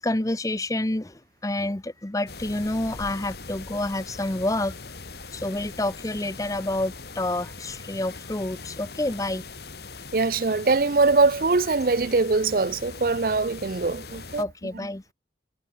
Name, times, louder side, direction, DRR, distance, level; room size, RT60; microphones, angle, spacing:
voice 1, 0.0-4.7 5.3-9.4 14.4-15.0, left 1 dB, 20° left, 0.8 m, -28 dB
sound 1, 2.3-14.4, left 3 dB, 60° left, 2.9 m, -41 dB
voice 2, 10.1-14.4, right 3 dB, 50° right, 0.6 m, -22 dB
head